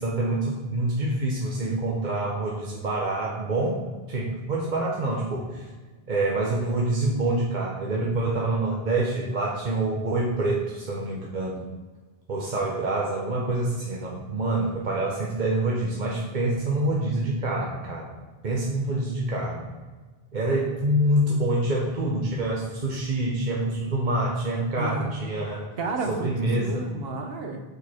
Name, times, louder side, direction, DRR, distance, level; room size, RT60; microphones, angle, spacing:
voice 1, 0.0-3.8 4.1-5.7 6.1-11.6 12.3-18.1 18.4-19.7 20.3-25.7 26.1-26.9, right 2 dB, 50° right, -3 dB, 1.0 m, -26 dB
voice 2, 24.6-25.2 25.8-27.6, right 2 dB, 75° right, 4 dB, 1.1 m, -32 dB
6.3 x 5.2 x 4.3 m, 1.4 s
omnidirectional pair, 1.0 m